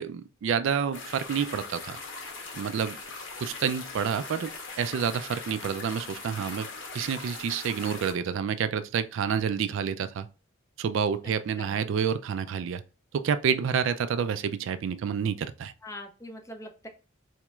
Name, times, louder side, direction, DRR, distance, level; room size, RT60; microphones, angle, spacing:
voice 1, 0.0-2.0 2.5-3.0 3.4-10.3 10.8-12.8 13.1-15.7, right 7 dB, 60° right, 0.3 m, -29 dB
sound 1, 0.9-8.1, left 4 dB, 60° left, 0.9 m, -40 dB
voice 2, 11.2-11.8 15.8-16.9, left 1 dB, 15° left, 0.5 m, -43 dB
4.2 x 3.0 x 2.3 m
head